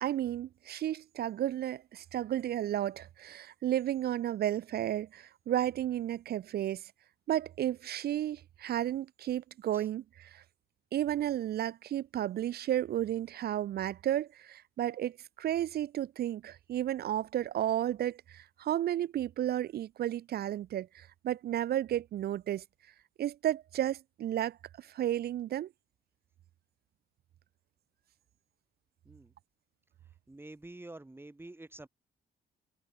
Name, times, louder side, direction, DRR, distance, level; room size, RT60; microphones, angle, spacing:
voice 1, 0.0-6.9 7.3-10.4 10.9-22.6 23.2-25.7, right 12 dB, 55° right, 0.4 m, -33 dB
voice 2, 30.3-31.9, right 2 dB, 10° right, 2.1 m, -48 dB
cardioid pair, 90°, 20 cm